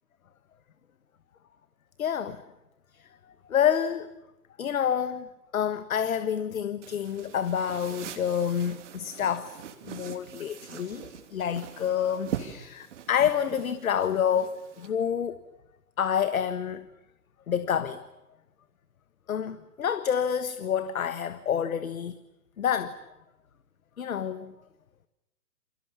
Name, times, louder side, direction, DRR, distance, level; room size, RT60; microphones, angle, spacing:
voice 1, 2.0-2.4 2.9-3.1 3.5-4.1 4.6-5.3 5.5-9.6 9.8-15.4 16.0-16.8 17.5-18.0 19.3-22.2 22.6-23.0 24.0-24.5, left 8 dB, 55° left, 1.5 m, -28 dB
Pillow Fixing Edited, 6.8-14.9, right 9 dB, 45° right, 3.2 m, -42 dB
28.5 x 27.5 x 7.2 m
figure-of-eight pair, 130°, 49 cm